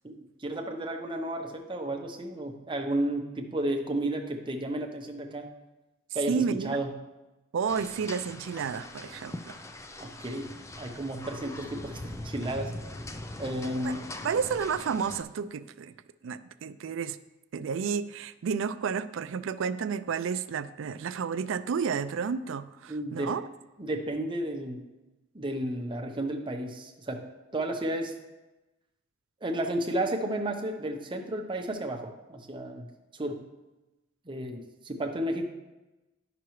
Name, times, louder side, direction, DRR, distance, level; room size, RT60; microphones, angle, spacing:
voice 1, 0.0-5.5 6.1-6.9 10.0-10.5 10.8-12.8 13.4-14.0 22.9-23.3 23.8-24.9 25.3-27.2 27.5-28.1 29.4-32.9 33.1-33.4 34.3-35.5, right 1 dB, 25° right, 2 dB, 0.8 m, -32 dB
voice 2, 6.3-6.8 7.5-9.5 13.8-13.9 14.2-15.9 16.2-17.2 17.5-23.5, right 6 dB, 70° right, 13 dB, 0.4 m, -31 dB
sound 1, 7.7-15.2, left 1 dB, 15° left, 0.4 m, -41 dB
10.0 x 6.0 x 3.1 m, 1.1 s
head